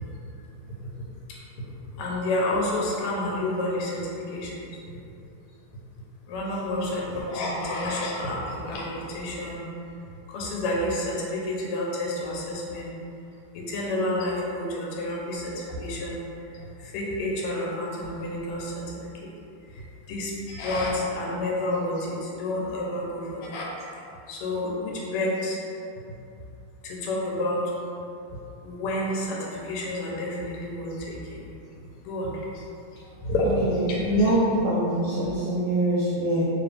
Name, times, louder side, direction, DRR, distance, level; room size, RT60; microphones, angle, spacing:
voice 1, 2.0-4.5 6.3-9.6 10.3-12.9 13.7-15.5 15.8-16.2 16.9-18.7 20.1-22.1 22.4-23.7 24.3-25.6 26.8-27.6 28.6-31.2 32.1-32.3 33.2-33.5 33.9-34.0, left 1 dB, 90° left, -3 dB, 1.6 m, -29 dB
voice 2, 33.6-36.4, right 1 dB, 75° right, -6 dB, 1.2 m, -24 dB
3.4 x 2.9 x 3.2 m, 2.7 s
omnidirectional pair, 2.4 m